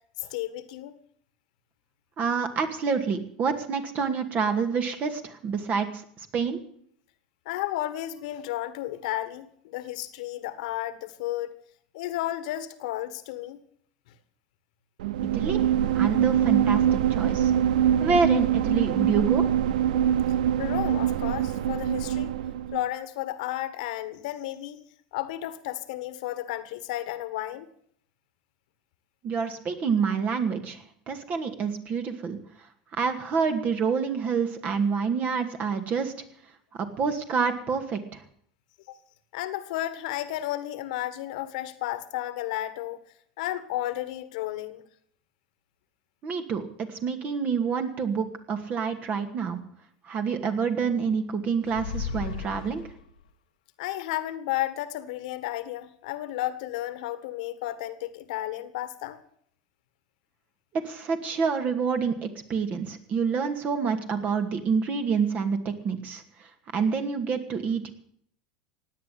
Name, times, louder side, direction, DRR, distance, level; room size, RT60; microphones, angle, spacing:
voice 1, 0.2-0.9 7.4-11.5 11.9-13.6 20.6-22.3 22.7-24.8 25.1-27.7 38.9-39.0 39.3-43.0 43.4-44.8 53.8-59.2, left 14 dB, 70° left, 13 dB, 1.7 m, -33 dB
voice 2, 2.2-6.0 6.3-6.6 15.3-15.7 15.9-17.5 18.0-19.4 29.2-32.4 32.9-36.1 36.7-38.2 46.2-49.6 50.0-52.8 60.8-66.5 66.7-67.9, right 5 dB, 40° right, 6 dB, 2.4 m, -27 dB
sound 1, 15.0-22.8, right 10 dB, 80° right, 0.7 m, -24 dB
sound 2, 51.6-53.3, left 6 dB, 90° left, 1.4 m, -35 dB
16.5 x 9.6 x 8.6 m, 0.65 s
hypercardioid pair, 100°, 4 cm